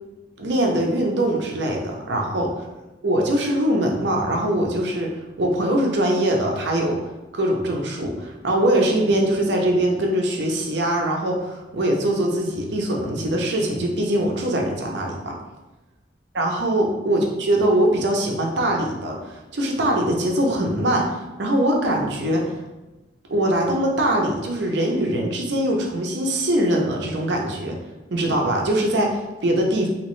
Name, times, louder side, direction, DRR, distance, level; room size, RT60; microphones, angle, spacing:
voice 1, 0.4-2.5 3.0-5.1 5.4-7.0 7.3-15.3 16.3-22.5 23.3-27.8 28.1-29.9, right 1 dB, 65° right, 0 dB, 0.6 m, -22 dB
3.0 x 2.8 x 3.1 m, 1.1 s
head